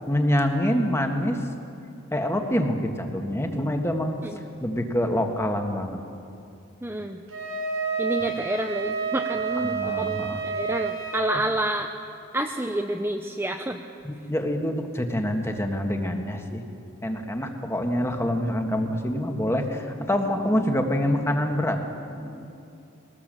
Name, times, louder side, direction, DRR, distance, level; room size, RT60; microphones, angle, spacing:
voice 1, 0.1-1.4 2.1-4.2 4.6-6.0 9.5-10.4 14.0-16.6 17.0-22.5, equal, 10° left, 4 dB, 1.6 m, -26 dB
voice 2, 6.8-7.2 8.0-11.9 12.3-13.8, right 1 dB, 10° right, 4 dB, 0.6 m, -29 dB
Wind instrument woodwind instrument, 7.3-11.3, right 5 dB, 75° right, 4.6 m, -29 dB
21.5 x 19.0 x 7.6 m, 2.7 s
head